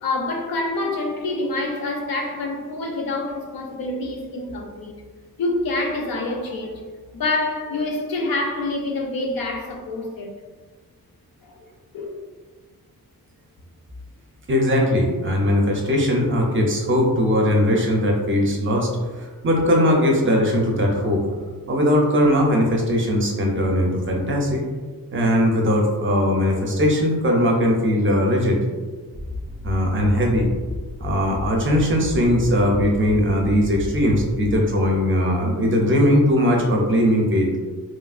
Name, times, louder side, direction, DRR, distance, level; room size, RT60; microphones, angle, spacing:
voice 1, 0.0-5.0 5.4-6.8 7.1-10.3 11.4-11.6 11.9-12.2, left 2 dB, 75° left, 0.6 m, -26 dB
voice 2, 14.5-18.9 19.2-21.2 21.7-24.6 25.1-28.6 29.6-30.5 31.0-37.6, equal, 35° right, 0.5 m, -19 dB
sound 1, 29.1-34.9, left 2 dB, 20° left, 0.3 m, -32 dB
3.1 x 2.4 x 2.4 m
wide cardioid pair, 165°, 35 cm